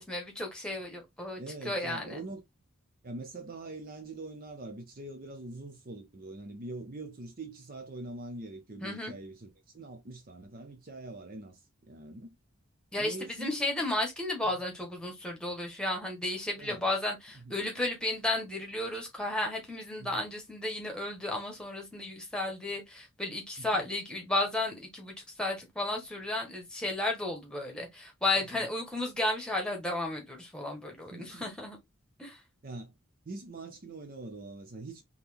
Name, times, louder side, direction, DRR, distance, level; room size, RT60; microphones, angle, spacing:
voice 1, 0.0-2.2 8.8-9.1 12.9-31.8 32.2-32.4, left 1 dB, 5° left, 1.3 m, -33 dB
voice 2, 1.4-2.4 3.0-12.3 13.0-13.6 16.6-16.9 17.4-17.5 20.0-20.2 23.6-23.8 28.5-28.7 31.1-31.4 32.6-32.9 33.3-35.0, right 2 dB, 45° right, 0.6 m, -43 dB
4.0 x 2.9 x 3.5 m
head